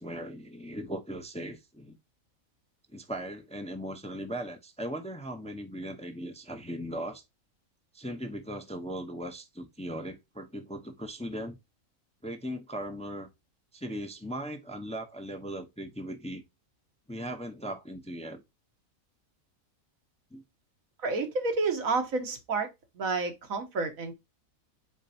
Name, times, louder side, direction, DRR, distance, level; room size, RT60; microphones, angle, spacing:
voice 1, 0.0-2.0 2.9-7.2 7.9-11.6 12.2-13.3 13.7-16.4 17.1-18.4 20.3-20.4, right 1 dB, 5° left, 0.8 m, -38 dB
voice 2, 21.0-22.7 23.0-24.1, right 3 dB, 75° right, 1.7 m, -30 dB
7.3 x 4.6 x 2.9 m
omnidirectional pair, 1.5 m